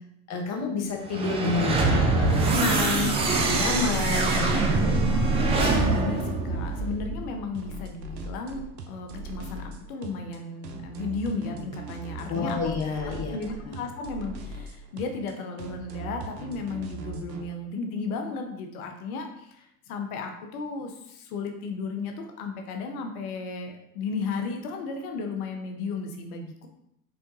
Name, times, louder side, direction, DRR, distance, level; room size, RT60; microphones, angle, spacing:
voice 1, 0.3-5.0 12.3-13.4 13.7-13.8, left 4 dB, 35° left, 2 dB, 1.0 m, -29 dB
sound 1, 1.1-7.3, right 3 dB, 15° right, 0.3 m, -24 dB
voice 2, 5.6-12.8 13.3-26.7, left 4 dB, 60° left, 4 dB, 0.8 m, -34 dB
sound 2, 7.5-17.4, right 3 dB, 85° right, 0.7 m, -40 dB
4.4 x 3.4 x 2.7 m, 0.77 s
hypercardioid pair, 95°, 49 cm